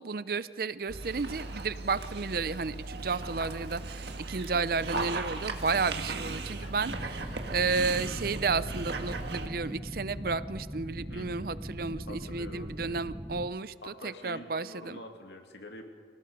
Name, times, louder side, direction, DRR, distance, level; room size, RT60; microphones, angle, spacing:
voice 1, 0.0-15.0, right 4 dB, 55° right, 15 dB, 0.6 m, -32 dB
Dog, 0.9-9.5, right 3 dB, 70° right, 1.7 m, -37 dB
sound 1, 6.8-13.5, equal, 5° right, 0.8 m, -40 dB
voice 2, 11.1-11.5 12.1-13.0 13.8-15.8, left 1 dB, 75° left, 4 dB, 2.5 m, -46 dB
27.5 x 18.0 x 5.3 m, 2.1 s
head